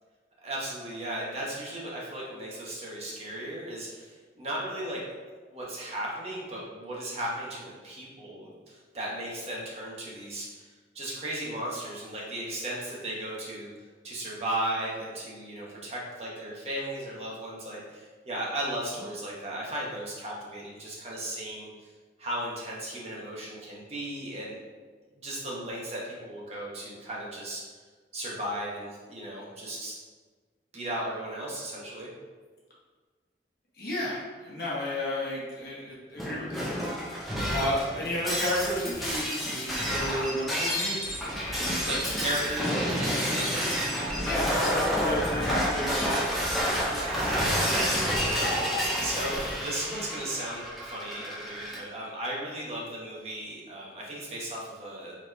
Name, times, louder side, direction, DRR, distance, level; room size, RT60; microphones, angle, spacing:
voice 1, 0.4-5.0 5.5-10.7 10.9-13.7 14.0-21.7 22.2-24.6 25.2-27.6 28.1-30.0 30.7-32.1 37.4-37.5 41.9-43.7 46.9-55.2, right 1 dB, 35° right, -4 dB, 0.9 m, -36 dB
voice 2, 33.8-36.8 37.5-41.0 44.2-46.2, left 1 dB, 55° left, -6 dB, 0.9 m, -32 dB
Shatter, 36.2-51.8, equal, ahead, 0.5 m, -29 dB
4.1 x 3.0 x 3.2 m, 1.4 s
head